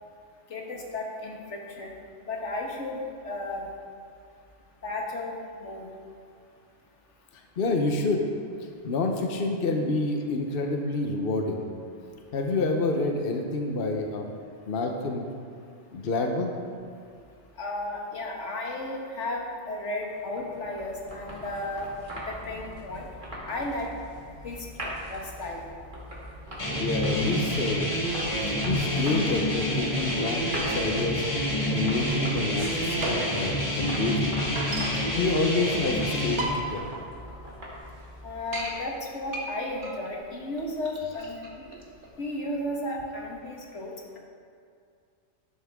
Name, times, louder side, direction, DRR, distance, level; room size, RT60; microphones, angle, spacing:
voice 1, 0.5-1.9 2.3-3.7 4.8-5.3 5.6-5.9 17.6-21.9 22.3-23.1 23.5-23.9 24.4-25.6 38.2-41.8 42.2-44.2, left 2 dB, 85° left, -1 dB, 1.9 m, -34 dB
voice 2, 7.6-8.2 8.8-11.7 12.3-14.3 14.7-15.2 15.9-16.5 26.8-27.8 28.7-31.2 31.7-34.4 35.1-36.9, left 3 dB, 55° left, 2 dB, 1.1 m, -28 dB
sound 1, 20.0-39.0, equal, 45° right, 2.4 m, -41 dB
sound 2, 26.6-36.4, equal, 30° left, 1.8 m, -28 dB
sound 3, 32.5-33.5 33.8-33.9 34.1-35.0 35.8-35.9 36.2-36.9 37.3-37.4 37.7-37.8 38.2-38.7 39.3-42.2, right 1 dB, 85° right, 1.9 m, -34 dB
12.0 x 11.5 x 3.6 m, 2.3 s
omnidirectional pair, 1.2 m